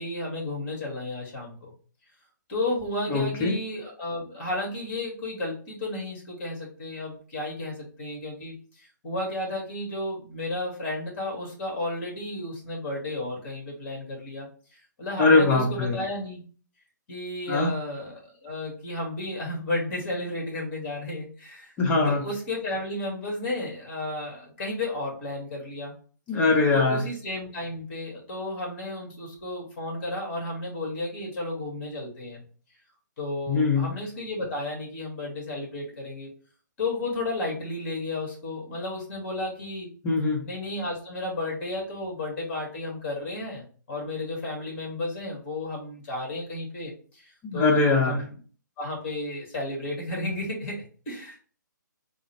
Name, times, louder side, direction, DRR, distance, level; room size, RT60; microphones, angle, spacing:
voice 1, 0.0-1.7 2.5-14.5 15.0-16.4 17.1-21.7 22.1-25.9 26.7-32.4 33.2-36.3 36.8-39.9 40.4-47.3 47.5-48.3 48.8-51.4, left 2 dB, 40° left, -1 dB, 1.8 m, -33 dB
voice 2, 3.1-3.5 15.2-16.0 17.5-17.7 21.8-22.2 26.3-27.0 33.5-33.9 40.0-40.4 47.4-48.2, left 3 dB, 15° left, 1 dB, 0.7 m, -22 dB
3.6 x 2.1 x 4.2 m, 0.41 s
figure-of-eight pair, 140°, 10 cm